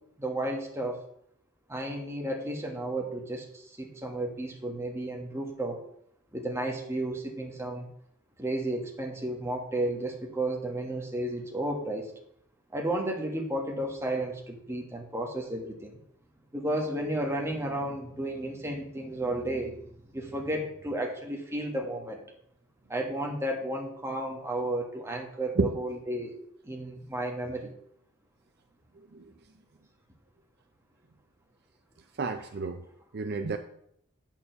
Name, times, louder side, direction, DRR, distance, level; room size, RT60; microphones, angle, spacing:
voice 1, 0.2-1.0 1.7-5.8 6.3-7.9 8.4-12.1 12.7-15.9 16.5-19.8 20.1-22.2 22.9-26.3 26.6-27.7, right 1 dB, 15° right, 1 dB, 1.3 m, -33 dB
voice 2, 32.2-32.8 33.1-33.6, right 3 dB, 50° right, 8 dB, 0.4 m, -30 dB
8.3 x 4.6 x 6.8 m, 0.72 s
head